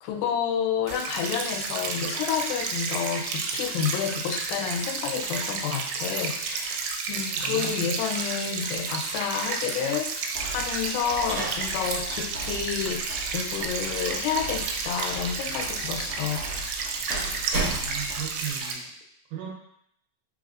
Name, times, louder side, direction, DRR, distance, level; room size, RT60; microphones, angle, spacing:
voice 1, 0.0-16.7, left 7 dB, 80° left, 3 dB, 2.2 m, -30 dB
sound 1, 0.9-18.7, right 4 dB, 90° right, 2.4 m, -31 dB
voice 2, 7.4-7.9 17.6-18.9 19.3-19.5, right 9 dB, 75° right, -2 dB, 2.0 m, -37 dB
sound 2, 10.3-18.3, right 2 dB, 50° left, 1.2 m, -41 dB
sound 3, 10.7-18.5, right 2 dB, 55° right, 1.6 m, -37 dB
4.8 x 3.6 x 2.4 m, 0.72 s
omnidirectional pair, 4.2 m